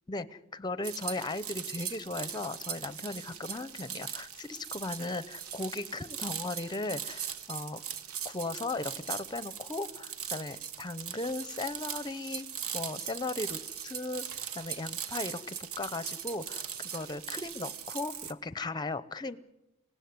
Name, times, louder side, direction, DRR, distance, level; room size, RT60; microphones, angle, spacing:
voice 1, 0.1-7.8 8.2-12.5 12.7-14.2 14.5-19.4, left 2 dB, 20° left, 15 dB, 0.8 m, -37 dB
sound 1, 0.8-18.3, right 9 dB, 75° right, 1.2 m, -40 dB
24.5 x 18.0 x 9.6 m, 0.95 s
head